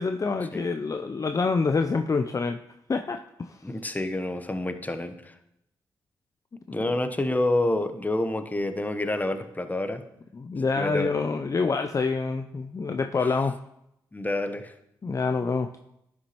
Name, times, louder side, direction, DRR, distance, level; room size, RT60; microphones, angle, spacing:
voice 1, 0.0-2.6 2.9-3.6 10.3-13.6 15.0-15.7, left 4 dB, 35° left, 6 dB, 0.5 m, -26 dB
voice 2, 3.6-5.3 6.7-10.0 10.8-11.1 14.1-14.7, left 1 dB, 15° left, 9 dB, 1.0 m, -28 dB
11.0 x 6.1 x 3.0 m, 0.81 s
hypercardioid pair, 45°, 10 cm